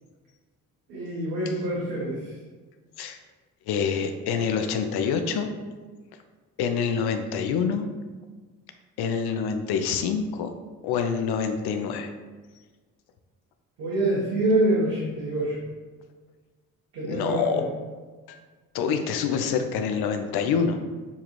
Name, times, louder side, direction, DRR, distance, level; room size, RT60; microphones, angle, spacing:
voice 1, 0.9-2.2 13.8-15.6 16.9-17.6, right 1 dB, 75° right, -8 dB, 1.2 m, -25 dB
voice 2, 3.7-5.5 6.6-7.9 9.0-10.5 10.8-12.1 17.0-17.6 18.7-20.8, left 6 dB, 70° left, 7 dB, 0.6 m, -26 dB
7.0 x 2.4 x 3.1 m, 1.4 s
hypercardioid pair, 45°, 40 cm